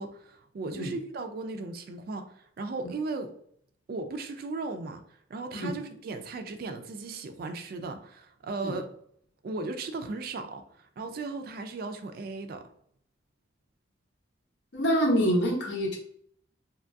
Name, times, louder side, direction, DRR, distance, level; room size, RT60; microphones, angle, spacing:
voice 1, 0.0-3.3 3.9-5.0 5.3-8.9 9.4-12.6, right 3 dB, 50° right, 8 dB, 0.3 m, -36 dB
voice 2, 14.7-16.0, equal, 65° left, 0 dB, 0.7 m, -26 dB
2.9 x 2.3 x 2.5 m, 0.66 s
head